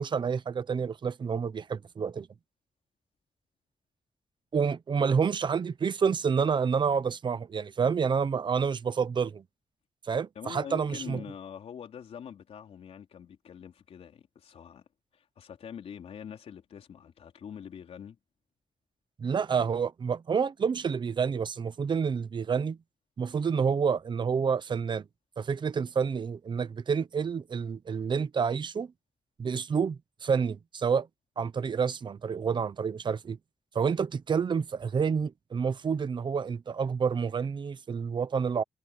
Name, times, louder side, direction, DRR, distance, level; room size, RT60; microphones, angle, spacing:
voice 1, 0.0-2.3 4.5-9.4 10.1-11.2 19.2-22.8 23.2-25.1 25.4-28.9 29.4-31.1 31.4-33.4 33.7-38.6, right 6 dB, 50° right, 1.0 m, -28 dB
voice 2, 10.4-14.9 15.1-18.2, left 8 dB, 85° left, 3.9 m, -44 dB
wide cardioid pair, 115°, 10 cm